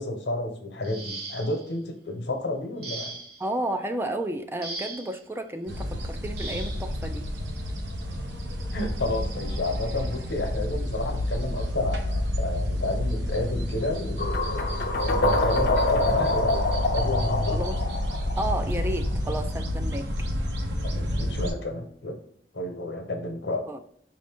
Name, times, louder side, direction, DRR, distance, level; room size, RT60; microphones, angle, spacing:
voice 1, 0.0-3.1 8.7-14.4 15.1-16.7 16.9-17.6 20.8-22.2 22.5-23.7, left 2 dB, 80° left, 3 dB, 1.0 m, -31 dB
sound 1, 0.8-1.7 2.8-3.5 4.6-5.2 6.4-6.8 8.0-8.2 8.7-8.9, right 3 dB, 60° right, 1.2 m, -38 dB
voice 2, 3.4-7.3 17.5-17.8 18.4-20.1 23.7-23.8, right 1 dB, 15° right, 7 dB, 0.3 m, -32 dB
sound 2, 5.7-21.5, left 1 dB, 75° right, 0.9 m, -29 dB
sound 3, 14.2-19.1, left 2 dB, 60° left, 0.6 m, -26 dB
5.1 x 2.8 x 3.5 m, 0.67 s
head